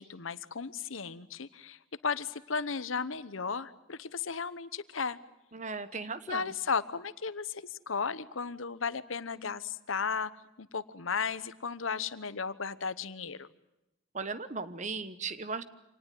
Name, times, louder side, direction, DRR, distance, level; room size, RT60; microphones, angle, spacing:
voice 1, 0.0-5.2 6.3-13.5, left 5 dB, 90° left, 15 dB, 1.1 m, -35 dB
voice 2, 5.5-6.5 14.1-15.6, right 4 dB, 35° right, 13 dB, 1.2 m, -37 dB
26.0 x 19.0 x 9.3 m, 0.91 s
head